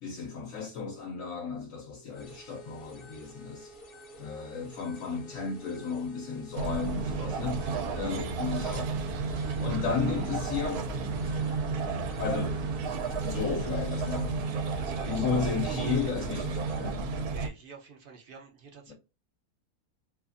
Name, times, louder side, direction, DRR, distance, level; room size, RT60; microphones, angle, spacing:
voice 1, 0.0-3.7 4.2-8.9 9.3-10.9 12.2-12.6 13.2-14.4 15.0-17.3 18.9-19.0, left 5 dB, 70° left, 1.0 m, -34 dB
sound 1, 2.1-17.0, right 1 dB, 55° left, 0.7 m, -49 dB
sound 2, 6.6-17.5, right 4 dB, 90° right, 1.1 m, -32 dB
voice 2, 14.6-15.3 17.2-18.9, right 4 dB, 60° right, 0.6 m, -49 dB
2.7 x 2.4 x 2.5 m
omnidirectional pair, 1.5 m